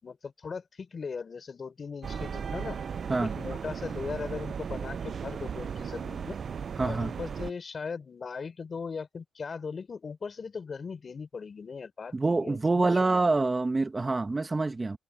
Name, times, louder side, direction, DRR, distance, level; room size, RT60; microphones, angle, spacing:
voice 1, 0.0-2.8 3.2-6.4 6.8-13.4, left 5 dB, 40° left, 3.9 m, -39 dB
sound 1, 2.0-7.5, right 6 dB, 50° right, 0.5 m, -36 dB
voice 2, 6.8-7.1 12.1-15.0, right 3 dB, 20° right, 1.8 m, -26 dB
cardioid pair, 90°, 0 cm